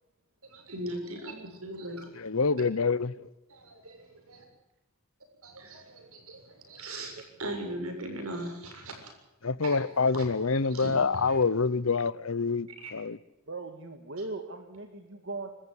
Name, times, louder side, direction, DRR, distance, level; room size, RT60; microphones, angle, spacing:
voice 1, 0.4-2.1 3.5-4.5 5.4-9.1 9.6-9.8 10.1-10.3 10.6-11.4 12.8-12.9, right 1 dB, 80° right, 7.1 m, -39 dB
voice 2, 2.2-3.3 9.4-13.2, left 4 dB, 70° left, 0.8 m, -27 dB
voice 3, 7.4-7.9 13.5-15.5, right 3 dB, 55° right, 1.9 m, -39 dB
26.5 x 14.0 x 8.1 m
head